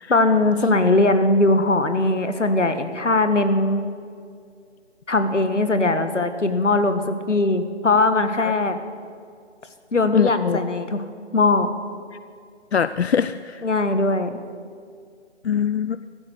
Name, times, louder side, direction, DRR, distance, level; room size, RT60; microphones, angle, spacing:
voice 1, 0.1-3.9 5.1-8.8 9.9-11.0 11.3-11.7 13.6-14.4, left 2 dB, 80° left, 9 dB, 1.6 m, -20 dB
voice 2, 10.1-10.6 12.7-13.6 15.4-16.0, left 7 dB, 65° left, 14 dB, 0.5 m, -22 dB
14.5 x 11.0 x 8.0 m, 2.2 s
figure-of-eight pair, 150°, 36 cm